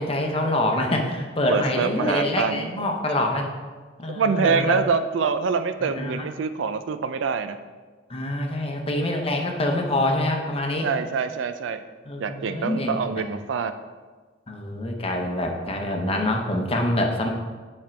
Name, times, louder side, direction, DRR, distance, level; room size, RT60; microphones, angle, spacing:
voice 1, 0.0-3.5 4.0-4.8 5.8-6.3 8.1-10.9 12.0-13.0 14.5-17.3, left 1 dB, 30° left, 2 dB, 0.8 m, -25 dB
voice 2, 1.5-2.7 4.1-7.6 10.8-11.8 12.2-13.7, right 5 dB, 80° right, 10 dB, 0.4 m, -25 dB
7.3 x 4.4 x 4.4 m, 1.4 s
head